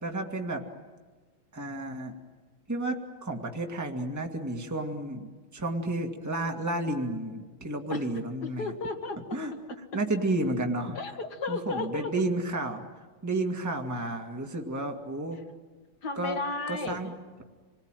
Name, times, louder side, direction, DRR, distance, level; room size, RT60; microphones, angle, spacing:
voice 1, 0.0-0.6 1.5-2.1 2.7-8.6 9.3-9.5 9.9-11.0 11.5-12.8 13.2-15.4 16.1-16.4 16.7-17.1, right 2 dB, 10° right, 3 dB, 1.8 m, -31 dB
voice 2, 8.4-9.4 11.0-12.1 16.0-17.1, left 3 dB, 55° left, 6 dB, 2.3 m, -33 dB
27.0 x 20.0 x 9.1 m, 1.4 s
omnidirectional pair, 2.1 m